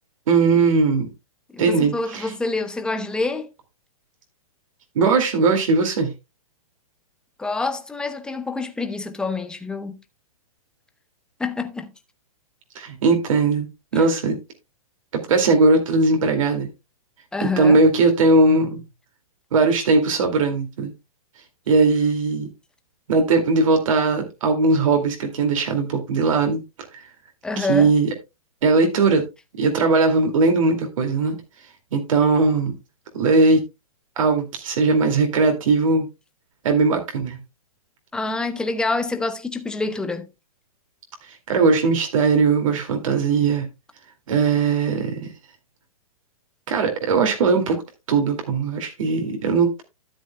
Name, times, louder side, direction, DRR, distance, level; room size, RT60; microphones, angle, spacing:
voice 1, 0.3-1.1 1.6-2.3 5.0-6.1 12.8-13.7 13.9-14.4 15.1-16.7 17.6-18.8 19.5-20.9 21.7-22.5 23.1-26.6 27.6-28.1 28.6-29.2 29.6-31.4 31.9-32.7 33.1-33.6 34.2-36.0 36.6-37.4 41.5-43.7 44.3-45.3 46.7-47.8 48.1-49.8, right 3 dB, 65° right, 2.3 m, -19 dB
voice 2, 1.5-3.5 7.4-10.0 11.4-11.9 13.9-14.1 17.3-17.8 27.4-27.9 38.1-40.3, left 3 dB, 5° left, 0.8 m, -27 dB
13.0 x 8.3 x 2.2 m
hypercardioid pair, 145°, 18 cm